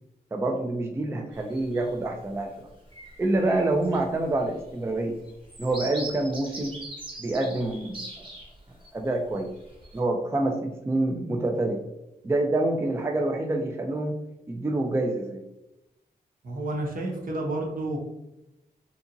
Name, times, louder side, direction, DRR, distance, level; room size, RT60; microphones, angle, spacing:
voice 1, 0.3-2.7 3.2-5.2 5.6-6.8 7.2-8.0 8.9-9.5 9.9-11.8 12.2-14.2 14.5-15.4, right 2 dB, 15° right, 2 dB, 0.3 m, -27 dB
sound 1, 1.3-1.9 2.4-2.6 2.9-8.9 9.3-10.0, right 2 dB, 30° right, 1.0 m, -42 dB
voice 2, 16.4-18.0, right 2 dB, 60° right, -1 dB, 0.8 m, -30 dB
2.8 x 2.5 x 2.5 m, 0.91 s
cardioid pair, 80°, 16 cm